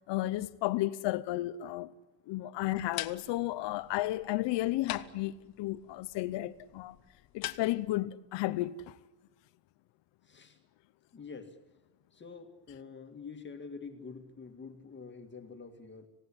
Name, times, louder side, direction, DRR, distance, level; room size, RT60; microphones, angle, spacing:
voice 1, 0.1-1.9 2.3-7.0 7.3-9.0, left 16 dB, 80° left, 0.9 m, -33 dB
sound 1, 2.6-8.0, left 13 dB, 55° left, 1.2 m, -45 dB
voice 2, 10.2-10.6 11.1-11.6 12.1-16.1, left 5 dB, 25° left, 2.1 m, -47 dB
27.0 x 17.5 x 9.9 m
cardioid pair, 165°, 42 cm